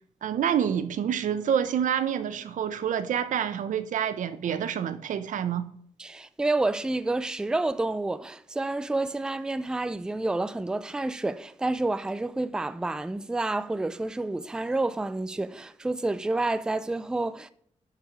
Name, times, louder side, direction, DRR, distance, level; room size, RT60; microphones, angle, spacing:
voice 1, 0.2-5.7, right 8 dB, 90° right, 0.8 m, -27 dB
voice 2, 6.0-17.5, right 2 dB, 5° right, 0.3 m, -29 dB
11.0 x 4.9 x 4.7 m
wide cardioid pair, 155°, 13 cm